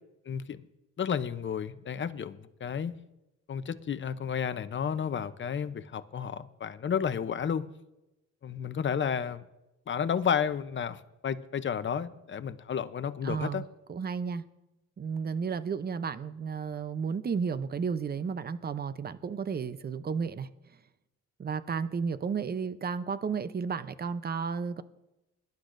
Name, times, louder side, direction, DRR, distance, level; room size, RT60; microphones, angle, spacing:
voice 1, 0.3-0.6 1.0-2.9 3.5-7.6 8.4-9.4 9.9-13.6, left 7 dB, 40° left, 0.7 m, -32 dB
voice 2, 13.2-13.6 13.9-14.4 15.0-20.5 21.4-24.8, right 6 dB, 30° right, 0.7 m, -33 dB
21.5 x 11.5 x 2.6 m
cardioid pair, 90°, 30 cm